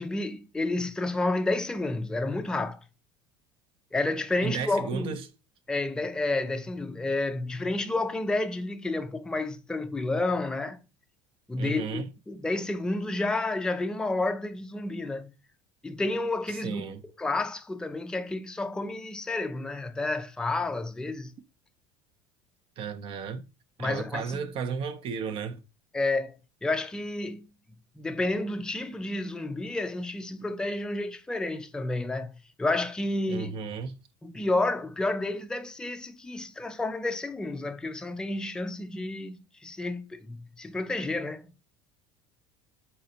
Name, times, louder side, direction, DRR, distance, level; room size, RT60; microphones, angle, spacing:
voice 1, 0.0-2.8 3.9-5.2 5.7-10.8 11.5-15.3 15.8-16.8 17.2-21.3 23.8-24.4 25.9-27.4 28.0-33.5 34.2-41.5, left 2 dB, 5° left, 0.4 m, -30 dB
voice 2, 4.4-5.3 11.6-12.1 16.6-17.0 22.8-23.4 23.8-25.6 33.3-33.9, right 6 dB, 50° right, 0.6 m, -34 dB
4.2 x 3.9 x 2.8 m
supercardioid pair, 100°, 12 cm